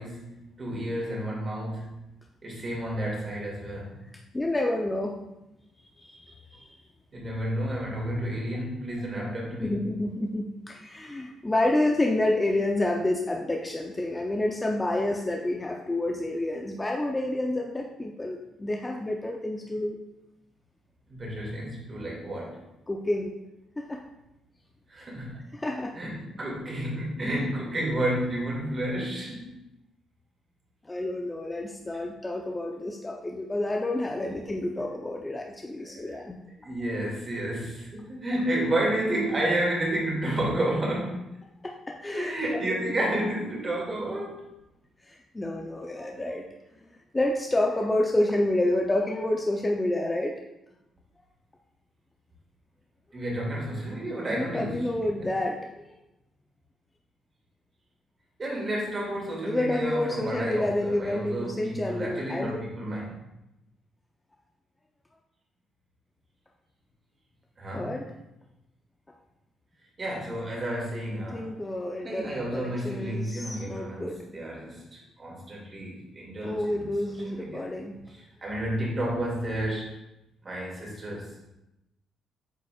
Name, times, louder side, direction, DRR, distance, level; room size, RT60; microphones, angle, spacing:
voice 1, 0.0-2.0 2.4-4.0 7.1-9.7 21.1-22.6 24.9-25.5 26.0-29.4 35.8-36.2 36.6-41.4 42.1-44.4 53.1-55.3 58.4-63.2 67.6-68.1 70.0-71.5 72.0-76.8 77.2-77.6 78.2-79.9 80.4-81.3, right 1 dB, 35° right, -3 dB, 2.3 m, -31 dB
voice 2, 4.3-5.2 6.0-6.7 9.6-20.0 22.9-23.3 23.8-24.0 25.5-25.9 30.8-36.4 41.6-42.6 45.0-46.4 47.1-50.3 54.3-55.9 59.4-62.6 67.7-68.1 71.3-74.2 76.4-78.0, left 1 dB, 15° left, 0 dB, 0.6 m, -29 dB
8.0 x 4.9 x 2.4 m, 0.89 s
cardioid pair, 90°, 0 cm